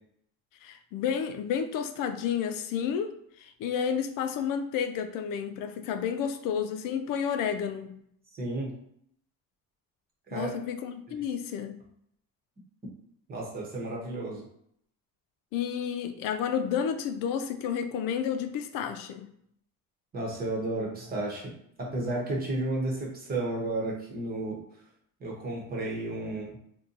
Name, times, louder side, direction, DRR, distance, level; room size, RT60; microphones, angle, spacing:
voice 1, 0.6-3.1 3.4-7.9 10.3-11.8 15.5-19.3, left 8 dB, 85° left, 7 dB, 0.5 m, -31 dB
voice 2, 8.3-8.7 10.3-10.5 13.3-14.4 20.1-21.5 21.8-24.6 25.2-26.6, right 2 dB, 30° right, -2 dB, 0.9 m, -32 dB
2.7 x 2.2 x 3.8 m, 0.70 s
cardioid pair, 165°, 32 cm